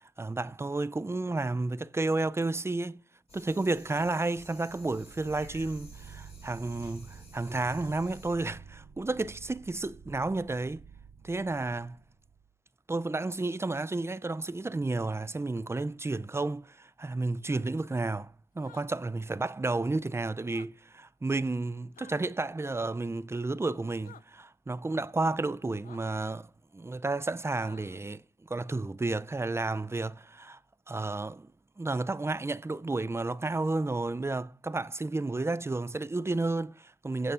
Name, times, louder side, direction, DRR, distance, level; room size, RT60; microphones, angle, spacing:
voice 1, 0.2-3.0 3.3-10.9 11.2-12.0 12.9-28.2 28.5-30.6 30.9-31.5 31.8-37.3, right 2 dB, 15° right, 0.4 m, -32 dB
sound 1, 3.3-8.3, left 2 dB, 30° left, 2.1 m, -54 dB
sound 2, 4.7-12.5, right 6 dB, 75° right, 0.7 m, -50 dB
sound 3, 18.6-18.9 20.4-20.7 22.0-22.2 24.0-24.2 25.8-26.0 27.6-28.0, left 8 dB, 45° left, 0.4 m, -53 dB
16.5 x 8.1 x 2.5 m
cardioid pair, 60°, 19 cm